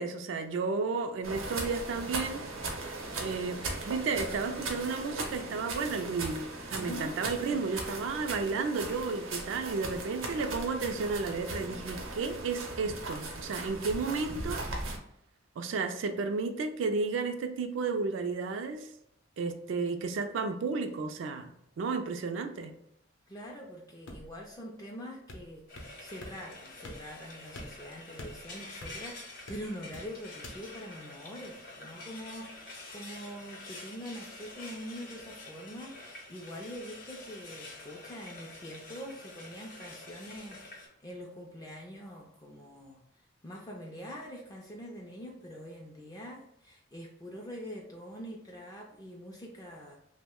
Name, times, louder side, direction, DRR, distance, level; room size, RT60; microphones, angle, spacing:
voice 1, 0.0-2.8 3.2-14.6 15.6-18.9 19.4-22.8, right 4 dB, 65° right, 7 dB, 0.3 m, -33 dB
sound 1, 1.2-15.0, right 2 dB, 85° right, 0.7 m, -38 dB
voice 2, 6.7-7.1 23.3-25.6 26.0-50.0, equal, 20° left, -1 dB, 0.3 m, -44 dB
sound 2, 24.1-24.5 25.3-25.9 26.2-26.4 26.8-27.2 27.6-29.1 29.5-30.1 30.4-30.6, left 1 dB, 80° left, 0.6 m, -45 dB
Frying (food), 25.7-40.9, left 2 dB, 45° left, 0.7 m, -47 dB
2.9 x 2.1 x 3.5 m, 0.77 s
head